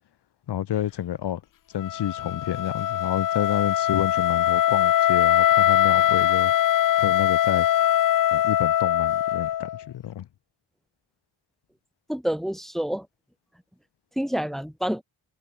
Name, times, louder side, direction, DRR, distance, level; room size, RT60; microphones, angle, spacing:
voice 1, 0.5-1.4 1.7-6.5 7.0-7.7 8.3-10.3, left 11 dB, 85° left, 1.0 m, -29 dB
Wind instrument woodwind instrument, 1.8-9.8, left 11 dB, 55° left, 0.5 m, -22 dB
voice 2, 12.1-13.1 14.2-15.0, equal, ahead, 1.2 m, -28 dB
cardioid pair, 90°, 40 cm